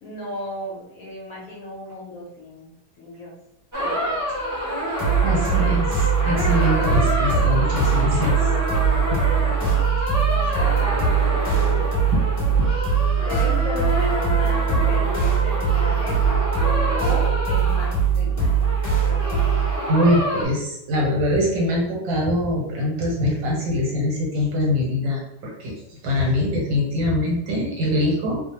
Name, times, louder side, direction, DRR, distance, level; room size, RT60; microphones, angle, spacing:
voice 1, 0.0-2.7 3.0-3.3 3.8-4.2 9.4-9.8 10.1-12.0 13.3-16.4 16.9-18.5, left 1 dB, 60° left, -4 dB, 1.0 m, -35 dB
sound 1, 3.7-20.4, equal, 30° right, 0.3 m, -27 dB
voice 2, 4.9-8.3 12.6-12.7 19.9-28.4, left 1 dB, 90° right, -2 dB, 1.6 m, -23 dB
sound 2, 5.0-19.8, right 6 dB, 25° left, 1.3 m, -21 dB
3.2 x 2.1 x 2.8 m, 0.81 s
omnidirectional pair, 2.0 m